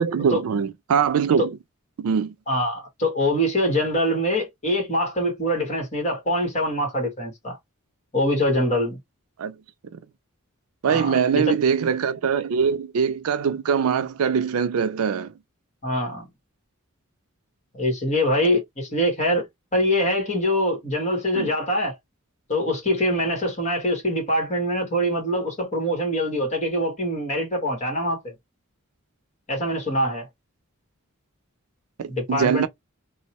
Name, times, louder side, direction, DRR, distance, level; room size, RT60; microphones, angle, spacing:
voice 1, 0.0-1.6 2.0-2.3 9.4-9.6 10.8-15.3 21.3-21.5 32.0-32.7, right 7 dB, 90° right, 0.4 m, -22 dB
voice 2, 2.5-7.6 8.1-9.0 10.9-11.2 11.5-11.6 15.8-16.3 17.7-19.4 19.7-21.9 22.5-28.3 29.5-30.3 32.1-32.7, equal, 35° left, 1.3 m, -24 dB
2.6 x 2.1 x 2.9 m
head